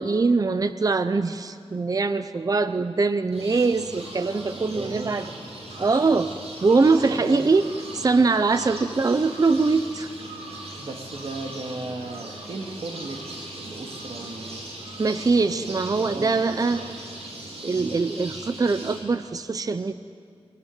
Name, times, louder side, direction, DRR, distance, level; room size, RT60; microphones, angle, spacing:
voice 1, 0.0-5.3 5.8-6.3 6.6-7.7 7.9-10.1 15.0-16.9 17.6-19.9, right 4 dB, 35° right, 10 dB, 0.7 m, -22 dB
sound 1, 3.3-19.0, right 1 dB, 85° right, 7.1 m, -39 dB
voice 2, 4.6-5.1 7.0-7.4 8.1-8.3 10.8-13.2 13.6-14.7 15.4-16.9 17.7-18.0, right 3 dB, 65° right, 2 dB, 2.4 m, -36 dB
24.0 x 23.5 x 9.4 m, 2.3 s
wide cardioid pair, 120°, 10 cm